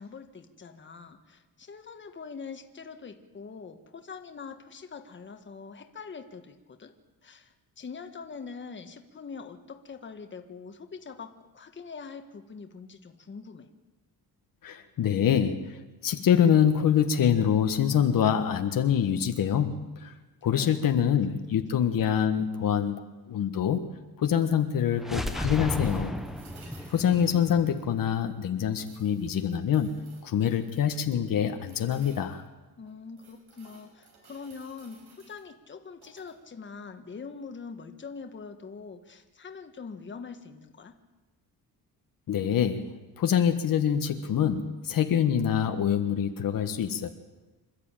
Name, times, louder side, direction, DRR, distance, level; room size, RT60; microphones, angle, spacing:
voice 1, 0.0-6.9 7.2-13.7 20.5-21.4 32.8-40.9, left 5 dB, 30° left, 6 dB, 1.6 m, -43 dB
voice 2, 14.6-20.1 20.4-23.8 24.2-26.1 26.9-32.4 42.3-42.8 43.2-47.1, left 8 dB, 65° left, 6 dB, 1.4 m, -25 dB
sound 1, 25.0-28.8, left 1 dB, ahead, 1.2 m, -34 dB
sound 2, 25.5-28.4 28.7-31.0 31.6-32.4 32.8-35.4 35.9-36.4 38.4-38.5, right 3 dB, 85° right, 6.1 m, -57 dB
26.5 x 12.5 x 9.0 m, 1.2 s
cardioid pair, 140°, 37 cm